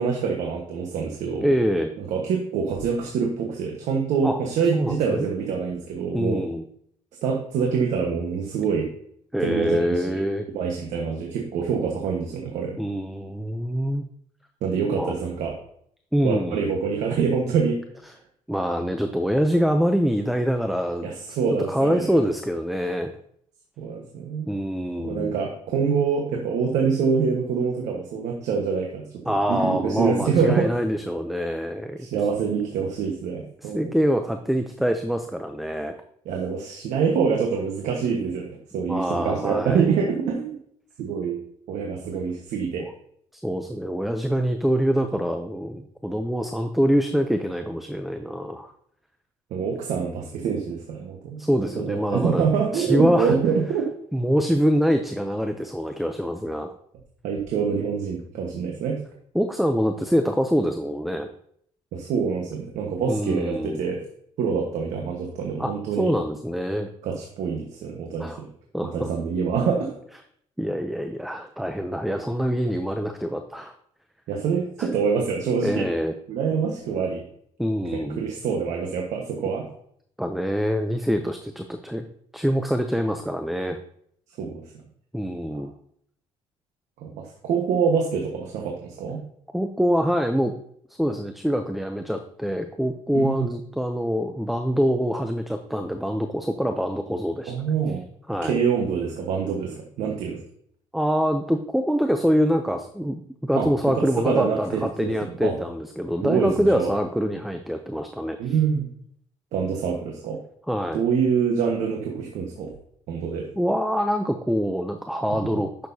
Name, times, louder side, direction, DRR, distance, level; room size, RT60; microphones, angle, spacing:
voice 1, 0.0-1.5 2.0-6.4 7.2-8.9 9.4-10.2 10.5-12.8 14.6-15.5 16.2-17.8 21.0-22.2 23.8-24.5 25.0-30.7 32.0-33.9 36.2-38.5 38.7-40.6 41.0-41.4 41.7-42.8 49.5-51.4 51.8-53.9 57.2-59.0 61.9-64.0 64.4-66.1 67.0-68.5 68.9-69.9 74.3-75.9 76.3-77.2 77.9-79.7 84.4-84.6 85.5-85.7 87.0-89.2 93.1-93.5 97.5-98.0 98.4-100.4 103.5-103.7 104.2-105.5 106.2-106.9 108.4-108.9 109.5-110.4 110.9-112.7 113.1-113.4, right 6 dB, 80° right, 1 dB, 1.3 m, -25 dB
voice 2, 1.4-1.9 4.2-4.4 4.7-5.3 6.1-6.6 9.3-10.5 12.8-14.1 14.9-15.2 16.1-16.6 18.5-21.1 21.5-23.1 24.5-25.4 29.3-32.1 33.6-35.9 38.9-39.9 43.3-48.7 51.4-52.4 52.7-53.3 54.1-56.7 59.3-61.3 63.1-63.8 65.6-66.9 68.2-68.4 68.7-69.1 70.6-73.7 74.8-74.9 75.6-76.1 77.6-78.2 80.2-82.1 82.3-83.8 85.1-85.7 89.5-90.5 91.0-97.5 98.3-98.6 100.9-108.5 110.7-111.0 113.6-115.7, equal, ahead, 7 dB, 0.5 m, -25 dB
10.5 x 6.6 x 2.7 m, 0.66 s
cardioid pair, 135°, 12 cm